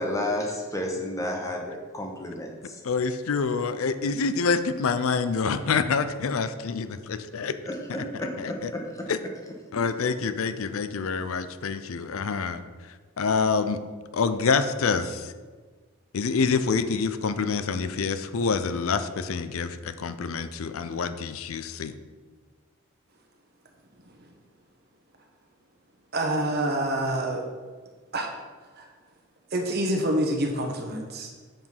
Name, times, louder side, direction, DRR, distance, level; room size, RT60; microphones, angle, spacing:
voice 1, 0.0-2.8 7.7-9.1 9.7-9.8, left 1 dB, 15° left, 1 dB, 1.0 m, -32 dB
voice 2, 2.8-7.5 8.2-8.7 9.1-9.2 9.7-12.6 13.2-13.8 14.1-15.3 16.1-21.9, left 5 dB, 75° left, 11 dB, 0.5 m, -27 dB
voice 3, 26.1-27.5 28.1-28.3 28.8-28.9 29.5-31.3, right 1 dB, 45° right, 2 dB, 1.0 m, -27 dB
7.6 x 4.8 x 5.4 m, 1.4 s
head